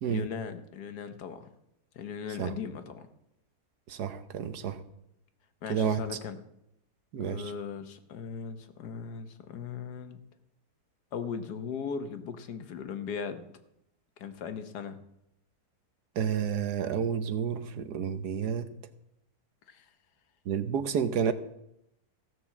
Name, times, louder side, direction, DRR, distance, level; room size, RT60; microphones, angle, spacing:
voice 1, 0.0-1.5 1.9-3.1 5.6-6.4 7.2-10.2 11.1-13.4 14.2-15.0 19.7-19.9, left 6 dB, 90° left, 9 dB, 1.6 m, -38 dB
voice 2, 3.9-4.8 5.7-6.0 7.1-7.4 16.2-18.7 20.5-21.3, right 7 dB, 80° right, 11 dB, 1.5 m, -30 dB
15.5 x 6.1 x 7.2 m, 0.81 s
omnidirectional pair, 1.7 m